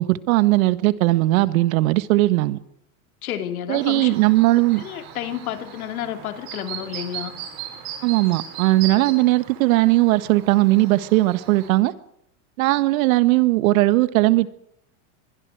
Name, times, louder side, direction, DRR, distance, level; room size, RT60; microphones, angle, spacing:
voice 1, 0.0-2.6 3.7-4.8 8.0-11.9 12.6-14.5, right 18 dB, 75° right, 1.7 m, -18 dB
voice 2, 3.2-4.1 4.8-7.4 9.0-9.2, left 11 dB, 85° left, 3.2 m, -31 dB
Chirp tweet, 3.7-11.7, right 10 dB, 55° right, 7.6 m, -38 dB
27.5 x 23.0 x 4.8 m
supercardioid pair, 110°, 42 cm